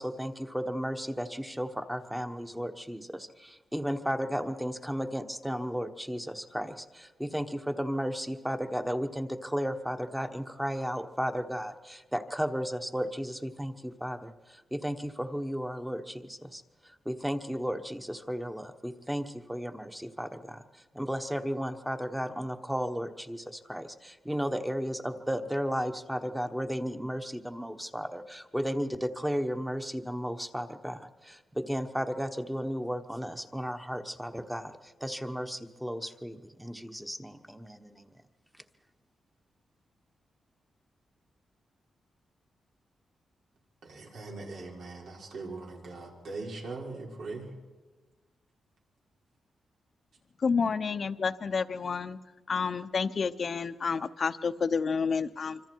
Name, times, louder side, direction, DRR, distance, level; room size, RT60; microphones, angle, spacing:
voice 1, 0.0-38.1, equal, 5° right, 7 dB, 1.2 m, -34 dB
voice 2, 43.8-47.5, right 3 dB, 85° right, -2 dB, 5.3 m, -40 dB
voice 3, 50.4-52.2 52.5-55.6, left 5 dB, 45° left, 12 dB, 0.8 m, -29 dB
25.5 x 25.5 x 4.6 m, 1.2 s
wide cardioid pair, 125°, 0 cm